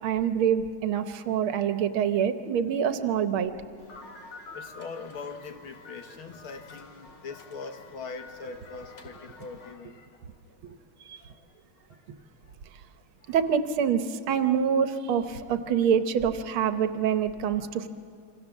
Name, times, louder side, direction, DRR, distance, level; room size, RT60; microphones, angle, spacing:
voice 1, 0.0-3.5 11.1-11.2 13.3-17.9, right 8 dB, 80° right, 9 dB, 1.8 m, -26 dB
sound 1, 3.8-9.7, left 3 dB, 60° left, 2.7 m, -48 dB
voice 2, 4.5-10.2 11.2-11.5 11.9-12.0 13.2-13.4, left 4 dB, 80° left, 6 dB, 2.3 m, -42 dB
27.5 x 25.0 x 7.2 m, 2.6 s
omnidirectional pair, 2.3 m